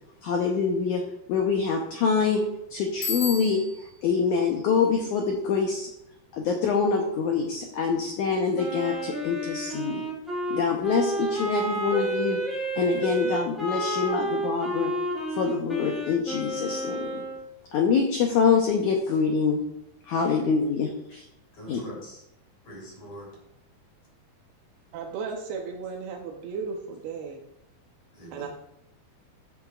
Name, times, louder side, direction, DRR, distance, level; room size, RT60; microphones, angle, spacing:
voice 1, 0.2-1.0 1.3-2.4 2.7-5.9 6.3-10.0 10.5-14.9 15.3-17.2 17.7-19.6 20.1-21.3 21.7-21.8, left 5 dB, 85° left, 2 dB, 1.7 m, -25 dB
Bicycle bell, 3.0-4.0, left 4 dB, 65° left, 4.1 m, -32 dB
Wind instrument woodwind instrument, 8.6-17.4, right 1 dB, ahead, 2.2 m, -30 dB
voice 2, 21.5-22.2 22.6-23.3 28.1-28.5, equal, 40° left, -4 dB, 4.2 m, -43 dB
voice 3, 24.9-27.4 28.3-28.5, right 5 dB, 80° right, 2 dB, 2.8 m, -35 dB
14.5 x 8.0 x 2.4 m, 0.82 s
omnidirectional pair, 4.6 m